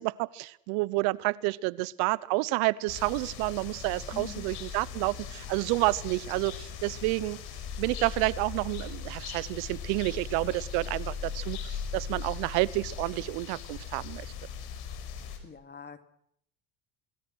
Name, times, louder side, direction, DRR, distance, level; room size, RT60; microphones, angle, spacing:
voice 1, 0.0-7.4 7.8-11.6 11.9-14.3, right 22 dB, 70° right, 21 dB, 0.9 m, -29 dB
sound 1, 2.9-15.4, left 7 dB, 65° left, 5.5 m, -39 dB
voice 2, 4.1-4.4 15.4-16.0, left 6 dB, 25° left, 9 dB, 2.5 m, -43 dB
26.0 x 20.5 x 6.3 m, 0.71 s
supercardioid pair, 90°, 41 cm